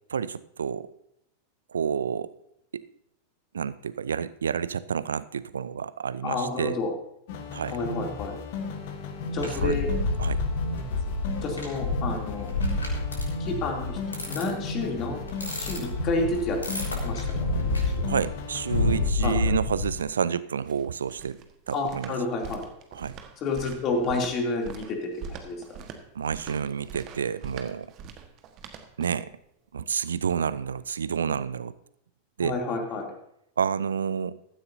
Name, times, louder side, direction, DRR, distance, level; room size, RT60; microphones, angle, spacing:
voice 1, 0.1-0.9 1.7-2.3 2.7-2.8 3.5-6.8 7.5-7.8 9.6-9.8 10.2-10.4 18.1-21.4 21.7-22.1 22.9-23.1 26.2-27.9 29.0-29.3 29.7-31.7 32.4-32.6 33.6-34.4, right 7 dB, 70° right, 17 dB, 0.4 m, -29 dB
voice 2, 6.2-6.9 7.7-8.4 9.3-9.9 11.4-12.5 13.4-14.0 14.2-15.2 15.6-16.6 17.0-17.2 18.0-18.1 19.2-19.5 21.7-22.6 23.4-25.6 32.4-33.1, left 3 dB, 35° left, 1 dB, 3.0 m, -29 dB
sound 1, 7.3-19.1, left 3 dB, 50° left, 1.6 m, -36 dB
sound 2, 9.4-19.9, left 2 dB, 75° left, 2.9 m, -29 dB
sound 3, 20.4-29.3, right 6 dB, 35° right, 1.5 m, -43 dB
15.5 x 13.5 x 2.8 m, 0.77 s
figure-of-eight pair, 90°, 0 cm